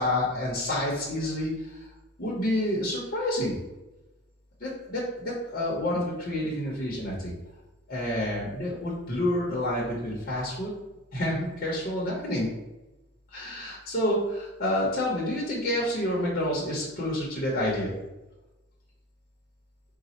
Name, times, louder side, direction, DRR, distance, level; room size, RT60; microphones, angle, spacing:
voice 1, 0.0-1.9 2.2-3.6 4.6-7.3 7.9-10.7 11.1-12.5 13.3-17.9, left 1 dB, 45° left, -5 dB, 0.9 m, -28 dB
4.0 x 2.2 x 4.2 m, 1.0 s
head